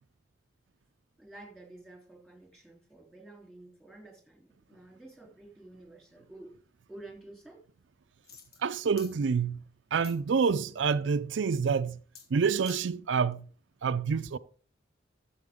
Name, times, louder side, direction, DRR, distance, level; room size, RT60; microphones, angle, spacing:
voice 1, 1.2-6.6 6.9-7.6, right 2 dB, 5° left, 3.3 m, -50 dB
sound 1, 8.2-8.7 9.0-9.1 10.0-10.6 12.2-12.3 12.6-12.9 13.3-13.4, left 6 dB, 55° left, 2.1 m, -49 dB
voice 2, 8.6-9.6 9.9-12.0 12.3-13.5 13.8-14.4, right 5 dB, 80° right, 0.4 m, -27 dB
13.5 x 7.6 x 3.6 m
head